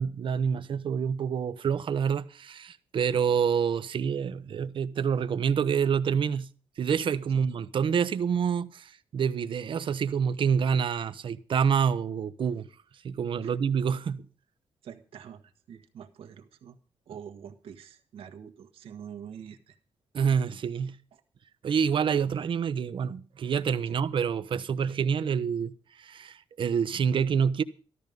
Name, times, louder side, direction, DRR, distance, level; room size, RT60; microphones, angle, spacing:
voice 1, 0.0-6.5 6.8-12.7 13.0-14.3 20.1-21.0 21.6-25.7 26.0-27.6, right 7 dB, 60° right, 0.9 m, -27 dB
voice 2, 14.8-15.4 15.7-16.8 17.1-19.8 21.1-21.2, right 8 dB, 85° right, 1.6 m, -45 dB
13.5 x 13.0 x 5.3 m
cardioid pair, 90°, 10 cm